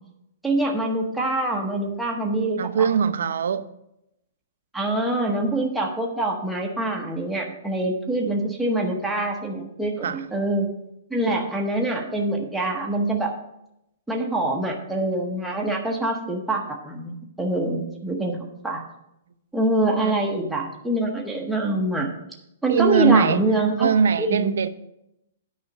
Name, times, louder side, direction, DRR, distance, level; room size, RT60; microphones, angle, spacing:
voice 1, 0.4-2.9 4.7-10.7 11.1-13.3 14.1-18.4 18.6-18.9 19.5-22.1 22.6-23.9 24.2-24.6, right 2 dB, ahead, 0.9 m, -25 dB
voice 2, 2.6-3.7 10.0-10.2 20.0-20.2 22.7-23.4 23.8-24.7, right 6 dB, 70° right, 0.6 m, -21 dB
9.4 x 5.0 x 6.1 m
hypercardioid pair, 180°, 0 cm